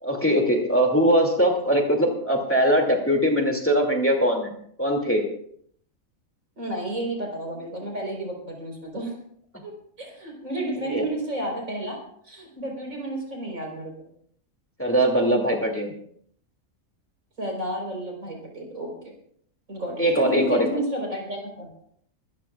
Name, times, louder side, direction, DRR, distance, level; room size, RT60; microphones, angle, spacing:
voice 1, 0.0-4.5 4.8-5.2 10.8-11.0 14.8-15.9 20.0-20.7, equal, 10° left, 1 dB, 2.4 m, -21 dB
voice 2, 6.6-9.2 9.6-9.7 10.0-12.0 12.2-14.1 17.4-19.1 19.7-21.7, right 1 dB, 70° right, 0 dB, 4.8 m, -31 dB
24.0 x 14.0 x 2.4 m, 0.64 s
omnidirectional pair, 1.4 m